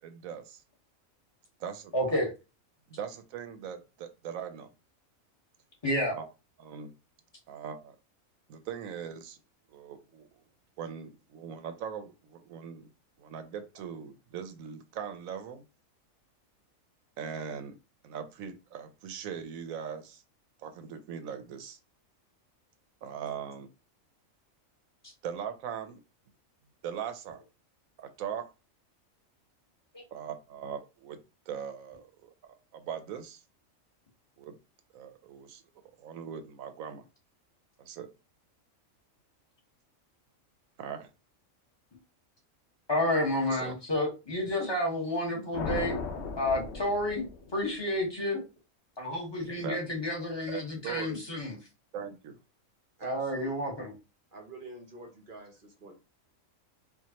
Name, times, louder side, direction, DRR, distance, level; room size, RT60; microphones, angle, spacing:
voice 1, 0.0-0.6 1.6-1.9 2.9-4.7 6.1-6.3 6.6-6.9 7.5-8.0 8.5-9.4 9.7-10.3 10.8-12.9 13.2-15.6 17.2-17.7 18.0-20.2 20.6-21.8 23.0-23.7 25.2-26.0 26.8-27.4 28.0-28.4 30.1-31.2 31.5-32.3 32.7-33.4 34.4-34.6 34.9-35.6 36.0-37.1 37.8-38.1 40.8-41.1 43.5-43.7 49.6-49.8 50.5-51.2 51.9-52.4, right 8 dB, 90° right, 9 dB, 1.0 m, -40 dB
voice 2, 1.9-2.3 5.8-6.1 29.9-30.0 42.9-46.0 46.4-47.3 47.5-48.4 49.0-51.6 53.0-53.9, left 1 dB, 20° left, -3 dB, 1.2 m, -30 dB
sound 1, 45.5-47.8, left 4 dB, 60° left, 0.9 m, -36 dB
voice 3, 53.0-53.5 54.3-55.9, right 2 dB, 50° right, 4 dB, 0.7 m, -45 dB
4.6 x 2.4 x 2.8 m, 0.29 s
omnidirectional pair, 1.4 m